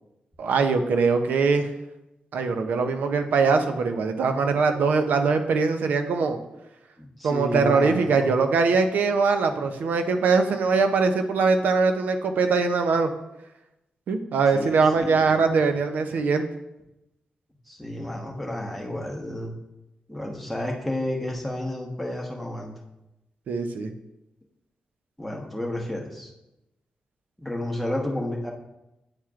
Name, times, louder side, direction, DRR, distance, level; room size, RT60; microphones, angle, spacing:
voice 1, 0.4-1.7 2.3-6.4 7.2-13.1 14.1-16.5 23.5-23.9, right 4 dB, 80° right, 7 dB, 0.5 m, -22 dB
voice 2, 7.0-8.3 14.5-15.5 17.7-19.5 20.1-22.7 25.2-26.3 27.4-28.5, left 1 dB, ahead, -1 dB, 1.1 m, -31 dB
8.8 x 4.4 x 2.4 m, 0.91 s
cardioid pair, 95°, 3 cm